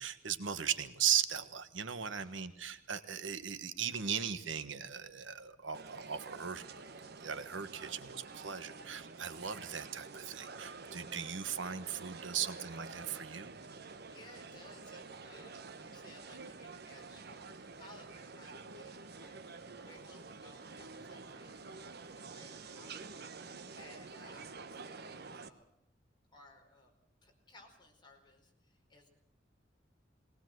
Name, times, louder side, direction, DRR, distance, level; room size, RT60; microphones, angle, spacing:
voice 1, 0.0-13.5, right 8 dB, 85° right, 11 dB, 1.3 m, -38 dB
voice 2, 2.0-2.7 9.1-9.2 13.7-19.4 19.7-25.7 26.3-26.9 27.2-29.1, left 2 dB, 25° left, 1 dB, 4.7 m, -60 dB
sound 1, 5.7-25.5, right 4 dB, 55° right, 1.2 m, -49 dB
22.0 x 18.5 x 7.8 m, 0.75 s
head